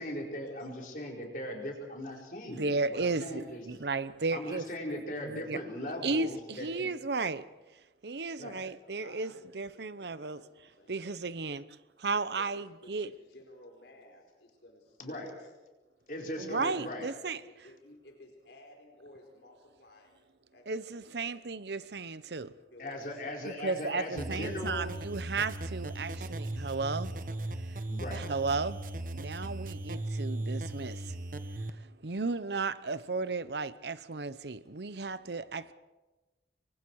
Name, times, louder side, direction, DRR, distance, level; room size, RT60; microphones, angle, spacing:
voice 1, 0.0-3.6 4.3-6.9 8.4-8.6 15.0-15.3 16.1-17.1 22.8-24.9 27.9-28.3, left 1 dB, 50° left, 4.7 m, -39 dB
voice 2, 2.5-4.7 5.2-5.6 6.0-7.5 8.0-10.4 10.9-11.6 12.0-13.1 16.4-17.4 20.7-22.5 23.4-27.1 28.1-28.8 29.1-31.2 31.6-35.7, right 3 dB, 70° right, 0.8 m, -34 dB
voice 3, 8.5-11.1 12.4-15.5 16.1-16.3 16.7-16.9 17.2-20.2 20.5-21.4 22.4-23.3, left 1 dB, 80° left, 4.4 m, -56 dB
sound 1, 24.2-31.7, right 1 dB, 50° right, 1.2 m, -37 dB
27.5 x 23.5 x 4.8 m
head